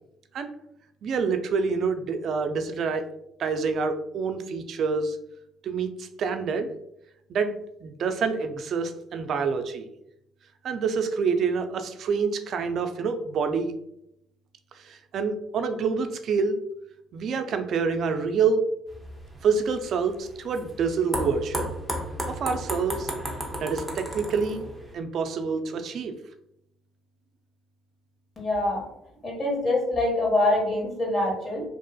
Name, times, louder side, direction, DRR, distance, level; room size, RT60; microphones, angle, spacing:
voice 1, 1.0-3.1 3.4-5.2 5.6-6.7 7.3-9.9 10.6-13.7 14.8-16.6 17.1-18.6 19.4-21.7 22.3-23.1 23.6-24.6 24.9-26.1, right 5 dB, 60° right, 8 dB, 0.3 m, -27 dB
sound 1, 18.9-24.9, equal, 10° right, 0.7 m, -34 dB
voice 2, 28.4-28.8 29.2-31.6, left 2 dB, 35° left, -2 dB, 1.3 m, -25 dB
2.8 x 2.4 x 2.2 m, 0.78 s
supercardioid pair, 65°, 0 cm